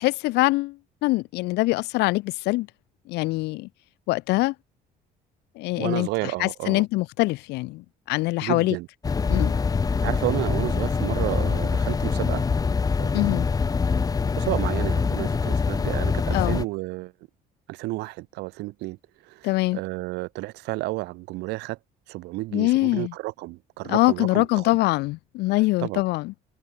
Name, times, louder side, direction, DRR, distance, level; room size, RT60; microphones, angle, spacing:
voice 1, 0.0-2.7 3.1-3.7 4.1-4.5 5.6-8.8 9.3-9.5 13.1-13.5 16.3-16.6 19.4-19.8 22.5-23.1 23.8-26.3, left 21 dB, 85° left, 0.5 m, -24 dB
voice 2, 5.8-6.8 8.4-8.9 10.0-12.4 13.0-13.1 14.4-17.1 17.7-19.0 19.3-21.8 22.1-24.7 25.8-26.0, right 21 dB, 85° right, 0.5 m, -31 dB
sound 1, 9.0-16.6, left 5 dB, 20° left, 0.7 m, -24 dB
cardioid pair, 110°, 17 cm